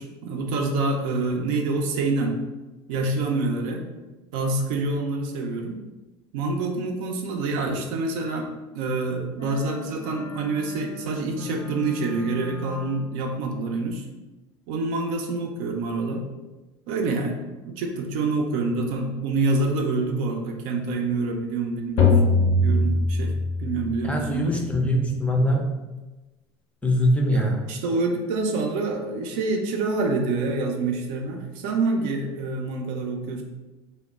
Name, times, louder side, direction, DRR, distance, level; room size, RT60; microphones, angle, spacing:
voice 1, 0.0-2.4 2.9-3.8 4.3-5.8 6.3-14.1 14.7-16.2 16.9-23.3 23.6-24.6 27.3-33.4, right 3 dB, 65° right, 2 dB, 0.4 m, -27 dB
sound 1, 9.4-13.2, left 5 dB, 85° left, 0.9 m, -39 dB
sound 2, 22.0-23.9, left 2 dB, 60° left, 0.6 m, -20 dB
voice 2, 24.0-25.6 26.8-27.6, equal, 10° left, 0 dB, 0.4 m, -22 dB
2.0 x 2.0 x 3.5 m, 1.1 s
hypercardioid pair, 75°, 14 cm